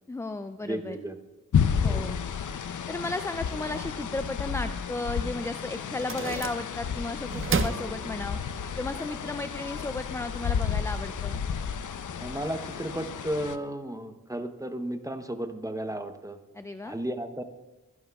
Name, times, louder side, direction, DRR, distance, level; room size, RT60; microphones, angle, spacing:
voice 1, 0.1-1.0 1.8-2.2 2.9-8.4 8.8-11.4 16.5-17.0, left 2 dB, 10° left, 10 dB, 0.3 m, -34 dB
voice 2, 0.6-1.2 1.8-2.0 12.2-16.4 16.8-17.4, right 1 dB, 10° right, 7 dB, 0.8 m, -34 dB
sound 1, 1.5-13.6, left 7 dB, 75° left, 0.6 m, -31 dB
sound 2, 5.9-7.0 7.3-8.6, right 5 dB, 40° right, 0.6 m, -32 dB
22.5 x 11.0 x 2.3 m, 1.1 s
wide cardioid pair, 80°, 31 cm